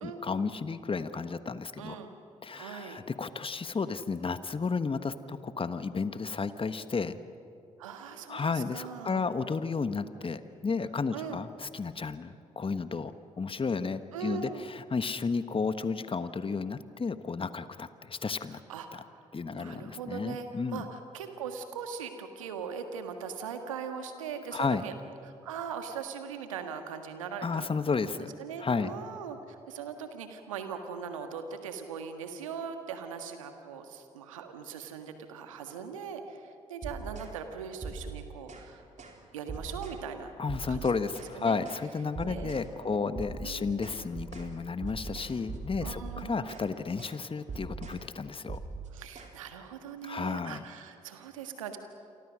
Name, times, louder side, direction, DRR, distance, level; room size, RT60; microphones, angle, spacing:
voice 1, 0.0-2.0 2.4-7.2 8.3-18.6 19.3-20.8 24.5-24.8 27.4-28.3 28.6-28.9 40.4-48.6 50.0-50.6, left 4 dB, 35° left, 12 dB, 1.3 m, -32 dB
voice 2, 1.8-2.1 2.5-3.0 7.8-9.3 11.1-11.4 14.1-14.6 18.4-19.1 19.5-24.9 25.2-27.7 28.2-38.8 39.3-40.3 40.7-40.9 41.3-41.6 42.2-42.5 42.8-43.0 43.4-43.9 45.8-46.5 48.9-51.8, right 6 dB, 90° right, 7 dB, 1.6 m, -40 dB
sound 1, 36.8-37.4 37.8-38.7 39.0-39.2 39.5-40.0 40.5-41.4 41.7-41.9 42.2-42.7 43.2-46.7 47.0-47.2 47.5-48.0 48.5-49.3, right 4 dB, 45° right, 3.9 m, -41 dB
28.5 x 23.5 x 6.4 m, 2.6 s
hypercardioid pair, 40°, 16 cm